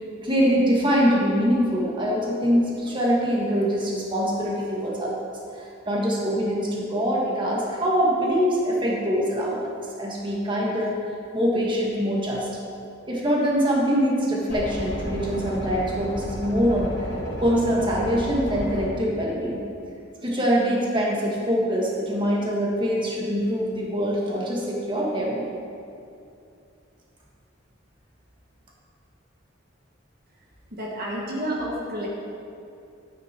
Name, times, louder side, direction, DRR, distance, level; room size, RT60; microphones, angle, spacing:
voice 1, 0.2-5.4 5.9-9.6 10.0-11.0 11.3-12.5 13.1-16.9 17.4-19.6 20.2-25.5, equal, 25° right, -4 dB, 1.9 m, -23 dB
sound 1, 14.5-18.9, left 1 dB, 60° left, 2.9 m, -33 dB
voice 2, 30.7-32.1, equal, 50° right, -3 dB, 1.7 m, -30 dB
12.5 x 9.2 x 4.6 m, 2.6 s
head